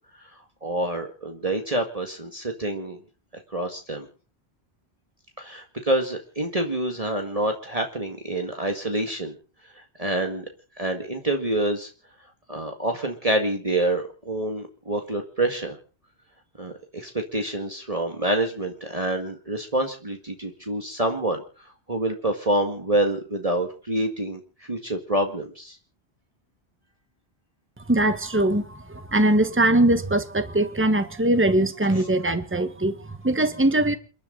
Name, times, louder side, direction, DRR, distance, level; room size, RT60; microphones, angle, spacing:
voice 1, 0.6-3.0 3.5-4.1 5.4-9.4 9.7-10.5 10.8-11.9 12.5-15.8 16.6-25.8 31.9-32.1, right 1 dB, 35° right, 2.1 m, -27 dB
voice 2, 27.9-34.0, right 1 dB, 10° right, 1.5 m, -21 dB
29.5 x 11.0 x 4.0 m
omnidirectional pair, 1.1 m